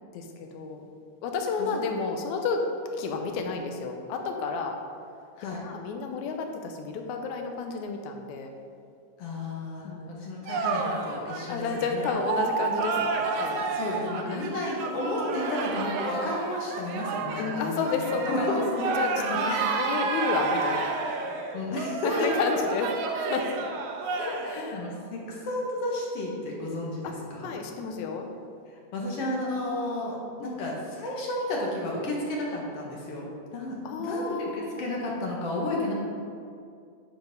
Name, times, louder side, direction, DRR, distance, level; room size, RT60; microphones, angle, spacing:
voice 1, 0.1-0.8 1.2-2.6 3.0-4.7 5.5-8.5 9.8-10.1 11.5-13.6 14.3-14.5 17.4-19.5 19.7-20.9 22.0-22.9 23.2-23.5 24.2-24.8 27.0-27.1 27.4-28.3 30.4-30.5 33.9-34.9, left 5 dB, 80° left, 3 dB, 2.1 m, -31 dB
voice 2, 9.2-12.0 13.7-18.9 19.2-19.7 21.5-22.3 24.6-27.5 28.9-35.9, left 1 dB, 55° left, -2 dB, 2.1 m, -32 dB
sound 1, 10.5-24.6, right 4 dB, 80° right, 2.1 m, -30 dB
9.8 x 4.9 x 5.2 m, 2.4 s
omnidirectional pair, 3.4 m